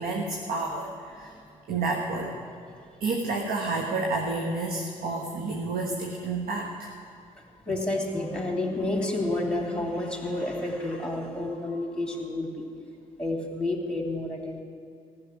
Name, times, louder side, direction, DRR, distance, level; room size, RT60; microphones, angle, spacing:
voice 1, 0.0-1.4 1.7-2.3 3.0-6.9, right 3 dB, 65° right, 1 dB, 1.4 m, -30 dB
voice 2, 7.4-12.6 13.2-14.6, left 2 dB, 5° left, 2 dB, 2.9 m, -30 dB
14.5 x 6.7 x 9.8 m, 2.4 s
hypercardioid pair, 50°, 16 cm